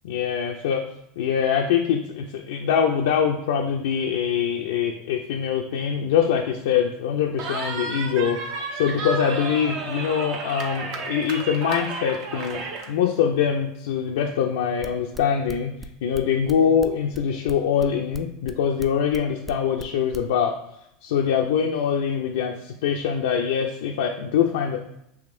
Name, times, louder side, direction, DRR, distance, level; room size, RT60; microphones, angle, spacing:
voice 1, 0.0-0.9 1.2-20.6 21.0-24.8, left 7 dB, 70° left, 2 dB, 0.3 m, -23 dB
Cheering, 7.4-12.9, right 3 dB, 55° right, 0.6 m, -32 dB
sound 1, 14.8-20.3, right 2 dB, 15° right, 0.3 m, -39 dB
4.8 x 2.9 x 2.5 m, 0.78 s
hypercardioid pair, 85°, 0 cm